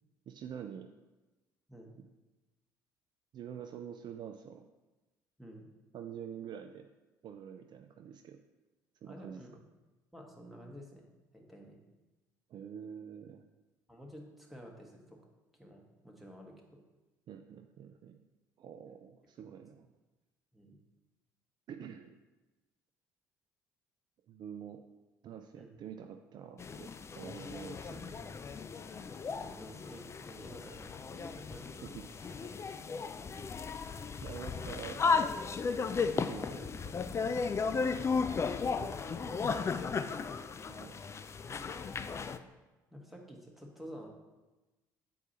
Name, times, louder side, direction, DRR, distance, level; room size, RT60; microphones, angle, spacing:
voice 1, 0.3-0.9 3.3-4.7 5.9-6.9 7.2-8.4 9.0-9.4 12.5-13.4 17.3-18.2 18.6-19.9 21.7-22.1 24.3-24.8 25.2-28.3 31.8-32.5 34.2-35.0 36.2-36.7 38.8-39.7 40.7-41.1, right 8 dB, 45° right, 6 dB, 0.4 m, -47 dB
voice 2, 9.0-9.6 10.1-11.8 13.9-15.2 15.5-16.8 20.5-20.8 25.6-25.8 28.9-31.9 33.2-33.4 36.4-36.7 37.6-38.2 42.9-44.1, equal, ahead, 0 dB, 1.4 m, -51 dB
sound 1, 26.6-42.4, left 5 dB, 30° left, 0.4 m, -35 dB
8.0 x 4.6 x 2.9 m, 1.1 s
hypercardioid pair, 55°, 10 cm